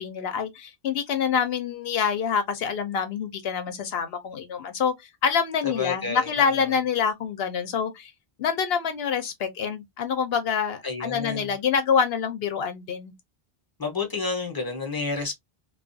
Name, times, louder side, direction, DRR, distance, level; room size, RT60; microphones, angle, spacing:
voice 1, 0.0-8.1 8.4-13.1, left 6 dB, 75° left, 0.8 m, -26 dB
voice 2, 5.6-6.7 10.8-11.5 13.8-15.3, left 4 dB, 25° left, 0.7 m, -30 dB
2.3 x 2.3 x 2.5 m
omnidirectional pair, 1.1 m